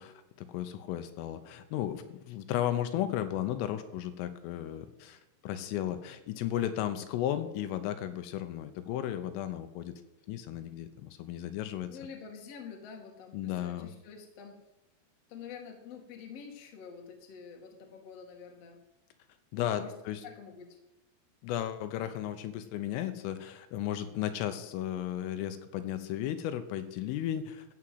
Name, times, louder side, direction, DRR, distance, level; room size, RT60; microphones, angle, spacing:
voice 1, 0.0-9.9 10.3-11.9 13.3-13.9 19.5-20.2 21.4-27.7, left 11 dB, 80° left, 10 dB, 3.4 m, -34 dB
voice 2, 11.9-14.6 15.3-18.8 19.5-19.9 20.2-20.8, left 6 dB, 50° left, 2 dB, 2.0 m, -47 dB
14.5 x 6.2 x 7.8 m, 0.93 s
omnidirectional pair, 5.9 m